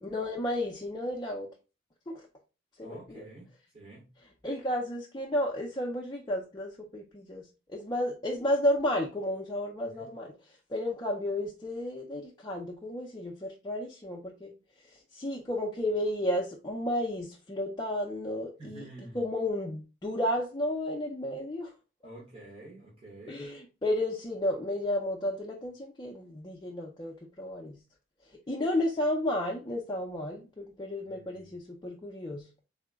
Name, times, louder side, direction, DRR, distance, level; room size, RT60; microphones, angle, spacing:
voice 1, 0.0-1.5 2.1-2.3 2.8-3.2 4.4-10.3 10.7-14.5 14.9-18.8 19.1-21.7 23.3-27.8 28.5-32.5, left 1 dB, 20° left, -2 dB, 0.4 m, -32 dB
voice 2, 2.8-4.1 9.8-10.1 18.6-19.3 22.0-23.4 31.0-31.6, right 1 dB, 30° right, -6 dB, 1.1 m, -49 dB
3.7 x 2.1 x 3.4 m, 0.31 s
head